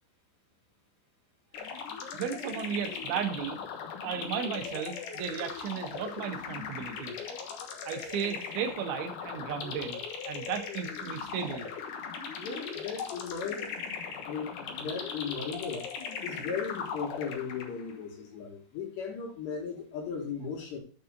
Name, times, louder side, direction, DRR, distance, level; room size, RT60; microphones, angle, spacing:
sound 1, 1.5-17.9, left 6 dB, 85° left, 1.8 m, -39 dB
voice 1, 2.1-3.6 4.0-7.2 7.9-10.0 10.3-11.7, right 7 dB, 75° right, 4 dB, 3.6 m, -35 dB
voice 2, 12.4-13.7 14.3-15.9 16.2-20.8, left 6 dB, 65° left, 0 dB, 3.8 m, -37 dB
13.0 x 4.4 x 3.9 m, 0.39 s
omnidirectional pair, 5.6 m